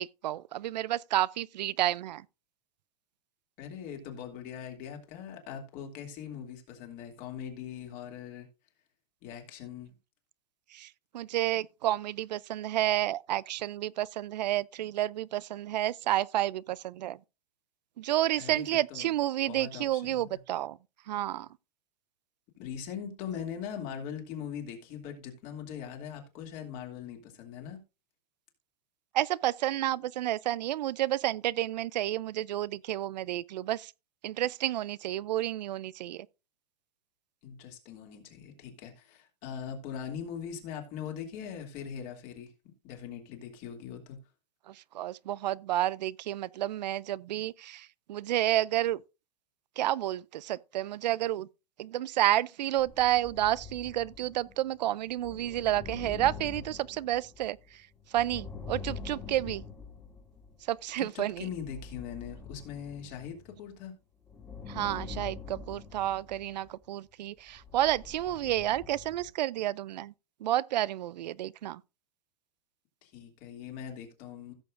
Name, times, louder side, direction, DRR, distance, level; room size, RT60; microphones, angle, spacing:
voice 1, 0.0-2.2 10.7-17.2 18.0-20.8 21.1-21.5 29.1-33.9 34.2-36.3 44.7-49.0 49.8-51.5 51.8-59.6 60.7-61.5 64.7-70.1 70.4-71.8, right 13 dB, 85° right, 0.4 m, -30 dB
voice 2, 3.6-8.5 9.2-9.9 18.4-19.1 19.5-20.2 22.6-27.8 37.4-42.5 42.8-44.2 61.0-63.9 73.0-74.5, left 8 dB, 40° left, 2.5 m, -41 dB
sound 1, 52.8-60.7 61.3-63.7 64.3-66.8 67.5-69.3, left 4 dB, 15° left, 1.9 m, -45 dB
16.0 x 6.9 x 2.5 m
supercardioid pair, 140°, 21 cm